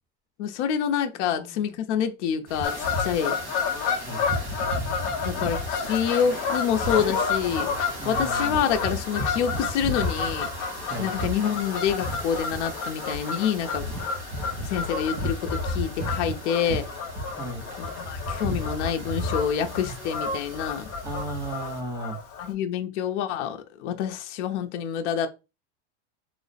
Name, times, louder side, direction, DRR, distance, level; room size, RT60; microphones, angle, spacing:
voice 1, 0.4-3.4 5.2-7.7 8.0-10.5 11.0-13.9 14.6-16.9 17.8-20.9 22.4-25.3, left 8 dB, 80° left, 0.6 m, -27 dB
voice 2, 1.2-1.5 4.0-4.3 8.0-8.6 10.9-11.1 17.4-17.7 21.0-22.2, right 2 dB, 10° right, 0.6 m, -35 dB
sound 1, 2.5-21.8, equal, 65° right, 1.5 m, -34 dB
Fowl / Bird vocalization bird call bird song, 2.6-22.5, left 5 dB, 40° left, 0.8 m, -31 dB
3.1 x 2.0 x 4.0 m
supercardioid pair, 165°, 35 cm